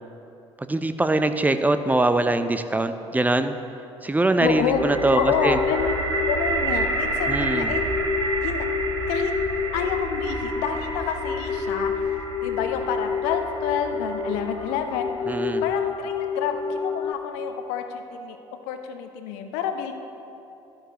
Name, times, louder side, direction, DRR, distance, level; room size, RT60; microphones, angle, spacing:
voice 1, 0.6-3.6 4.0-5.6 7.3-7.7 15.3-15.6, right 2 dB, 10° right, 10 dB, 0.6 m, -22 dB
voice 2, 4.4-4.8 5.1-6.0 6.3-7.8 8.4-8.7 9.1-9.3 9.7-12.1 12.4-15.1 15.6-18.4 18.7-19.9, left 7 dB, 65° left, 7 dB, 0.8 m, -28 dB
sound 1, 4.4-16.2, right 3 dB, 85° right, 0.8 m, -31 dB
sound 2, 4.8-17.1, left 6 dB, 30° left, 0.7 m, -29 dB
12.5 x 11.5 x 3.0 m, 2.9 s
figure-of-eight pair, 50°, 15 cm